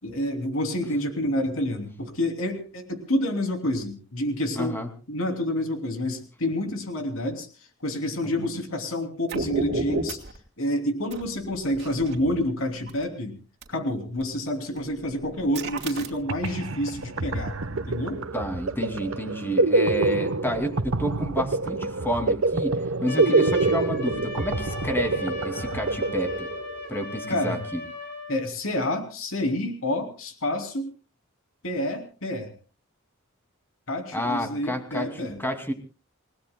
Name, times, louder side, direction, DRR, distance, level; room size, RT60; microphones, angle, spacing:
voice 1, 0.0-4.8 5.1-7.5 7.8-13.4 13.7-18.2 27.3-27.6 28.3-30.9 31.6-32.5 33.9-35.4, left 1 dB, 75° left, 5 dB, 3.0 m, -28 dB
voice 2, 4.6-4.9 8.2-8.5 18.3-26.5 26.9-27.8 34.1-35.7, equal, 10° left, 4 dB, 2.5 m, -30 dB
sound 1, 9.3-10.4 11.1-13.0 13.6-13.7 14.2-14.4 14.8-16.5, right 2 dB, 55° right, 2.5 m, -32 dB
sound 2, 16.0-16.1 16.3-26.9, right 2 dB, 70° right, 1.0 m, -26 dB
Trumpet, 23.0-28.4, left 3 dB, 55° left, 5.2 m, -37 dB
29.0 x 18.5 x 2.2 m, 0.35 s
head